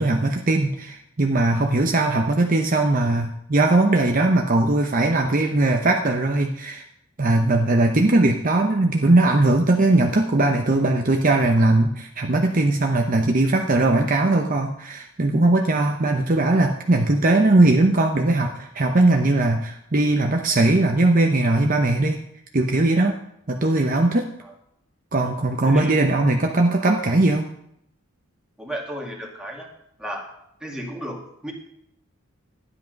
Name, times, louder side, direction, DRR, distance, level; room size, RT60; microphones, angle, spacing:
voice 1, 0.0-6.8 7.2-22.2 22.5-23.2 23.5-24.3 25.1-27.5, right 2 dB, 40° right, 2 dB, 0.8 m, -19 dB
voice 2, 25.7-26.0 28.6-29.7 30.0-30.3 30.6-31.5, equal, 5° right, -1 dB, 2.1 m, -33 dB
12.0 x 10.0 x 5.3 m, 0.74 s
head